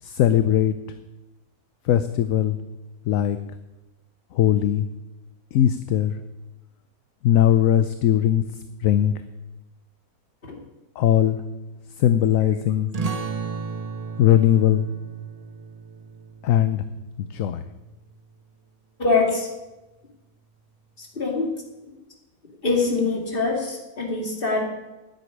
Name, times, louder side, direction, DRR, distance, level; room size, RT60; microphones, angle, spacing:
voice 1, 0.0-0.7 1.8-2.6 3.0-3.4 4.3-4.9 5.5-6.2 7.2-9.1 11.0-11.4 12.0-12.9 14.2-14.8 16.4-16.9 17.2-17.7, left 11 dB, 65° left, 11 dB, 1.0 m, -20 dB
sound 1, 12.9-18.1, right 4 dB, 30° right, 0.8 m, -34 dB
voice 2, 19.0-19.5 21.0-21.5 22.6-24.7, left 3 dB, 35° left, 1 dB, 2.7 m, -23 dB
9.6 x 8.6 x 9.8 m, 1.0 s
omnidirectional pair, 1.6 m